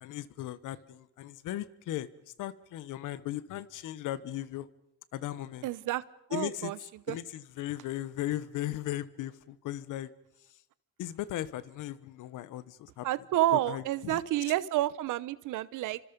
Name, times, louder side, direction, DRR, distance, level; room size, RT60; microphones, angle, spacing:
voice 1, 0.0-2.1 2.4-4.7 5.1-5.7 6.3-6.7 7.1-10.1 11.0-13.1 13.7-14.2, left 13 dB, 90° left, 16 dB, 1.1 m, -37 dB
voice 2, 5.6-6.0 6.3-6.8 7.1-7.2 13.0-16.0, right 15 dB, 85° right, 17 dB, 1.0 m, -29 dB
29.0 x 25.5 x 5.3 m, 0.77 s
cardioid pair, 90°, 30 cm